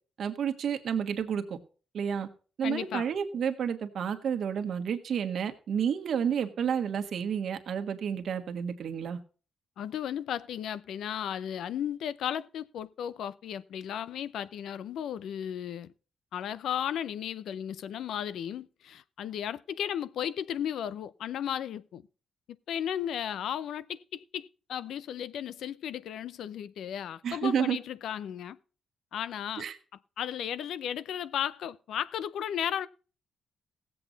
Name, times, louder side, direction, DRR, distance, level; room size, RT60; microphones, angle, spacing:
voice 1, 0.2-1.6 1.9-2.3 2.6-9.2 27.2-27.8 29.6-29.8, right 7 dB, 60° right, 1.4 m, -30 dB
voice 2, 2.6-3.1 9.8-15.9 16.3-22.1 22.7-28.6 29.1-29.7 30.2-32.9, left 9 dB, 80° left, 0.5 m, -35 dB
16.5 x 7.8 x 4.0 m
cardioid pair, 115°, 0 cm